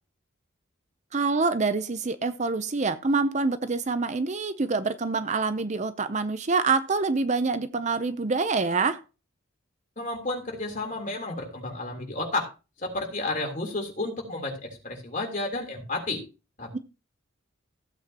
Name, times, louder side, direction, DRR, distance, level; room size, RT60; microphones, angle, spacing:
voice 1, 1.1-9.0 16.7-16.8, right 4 dB, 35° right, 0.6 m, -26 dB
voice 2, 10.0-12.5 12.8-16.2 16.6-16.8, left 2 dB, 40° left, 3.5 m, -31 dB
15.5 x 8.2 x 2.9 m
head